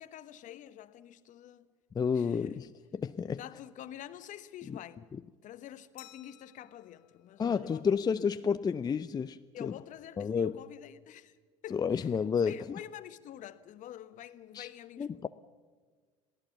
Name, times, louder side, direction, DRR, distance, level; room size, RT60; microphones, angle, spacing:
voice 1, 0.0-1.7 2.1-2.6 3.4-5.1 5.4-7.9 9.5-11.4 11.6-12.1 12.4-15.3, left 12 dB, 50° left, 1.2 m, -47 dB
voice 2, 1.9-3.4 4.7-4.8 7.4-9.7 10.2-10.5 11.7-12.8 14.5-14.7 15.0-15.3, left 6 dB, 25° left, 0.6 m, -31 dB
Glass, 6.0-8.4, left 16 dB, 70° left, 1.9 m, -58 dB
27.0 x 17.0 x 7.0 m
hypercardioid pair, 70°, 17 cm